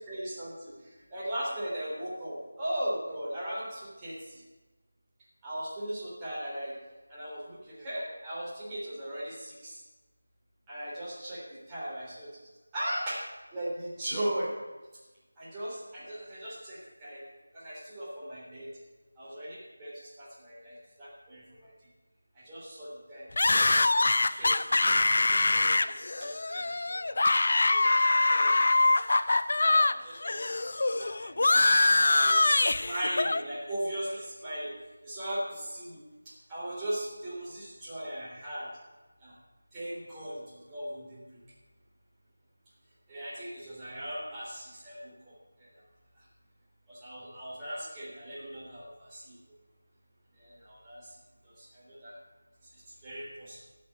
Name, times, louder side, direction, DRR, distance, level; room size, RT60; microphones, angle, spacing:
voice 1, 0.0-4.4 5.4-6.7 7.1-9.8 10.7-12.3 12.7-13.2 13.5-14.5 15.4-17.2 17.5-18.7 19.2-21.7 22.4-23.3 24.1-25.1 25.5-25.9 26.2-27.4 27.7-27.9 28.3-28.9 29.6-34.7 35.0-38.7 39.2-39.3 39.7-41.4 43.1-45.7 46.9-49.3 50.4-51.1 51.4-52.2 53.0-53.6, right 1 dB, 15° right, -9 dB, 3.6 m, -38 dB
sound 1, 23.4-29.9 30.2-33.4, left 2 dB, 55° left, 0.5 m, -24 dB
13.0 x 6.4 x 7.9 m, 1.2 s
figure-of-eight pair, 170°, 0 cm